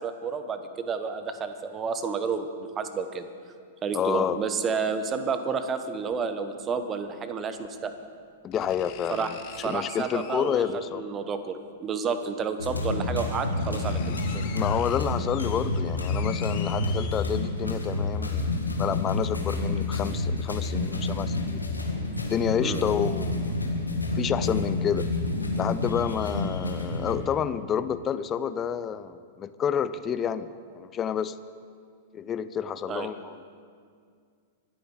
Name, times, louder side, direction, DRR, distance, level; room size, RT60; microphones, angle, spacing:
voice 1, 0.0-3.3 3.8-7.9 9.1-9.3 9.6-10.6 10.9-14.4 22.6-22.8 32.9-33.1, right 5 dB, 25° right, 9 dB, 1.1 m, -30 dB
voice 2, 3.9-4.4 8.4-9.4 9.6-11.0 14.5-18.5 18.8-21.7 22.3-23.5 24.1-25.1 25.5-31.4 32.1-33.4, left 8 dB, 25° left, 14 dB, 0.6 m, -29 dB
sound 1, 6.1-6.2 7.6-7.7 8.5-10.9 12.2-12.3 13.0-13.1 13.3-17.8 18.2-18.3, left 9 dB, 45° left, 1.1 m, -45 dB
sound 2, 12.6-27.2, left 2 dB, 85° left, 1.7 m, -29 dB
25.0 x 9.1 x 4.9 m, 2.2 s
figure-of-eight pair, 100°, 0 cm